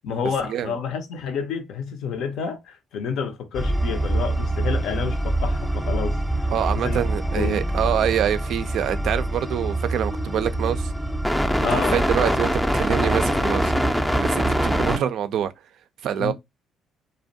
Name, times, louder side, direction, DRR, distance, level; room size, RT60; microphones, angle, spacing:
voice 1, 0.0-6.5 6.8-7.0 7.4-7.6 11.6-12.0 16.2-16.3, left 6 dB, 65° left, 0.5 m, -29 dB
sound 1, 3.5-15.0, right 1 dB, 5° left, 0.4 m, -24 dB
voice 2, 6.5-10.9 11.7-13.7 14.2-15.5 16.0-16.3, right 9 dB, 65° right, 0.3 m, -25 dB
2.4 x 2.1 x 2.6 m
hypercardioid pair, 50°, 0 cm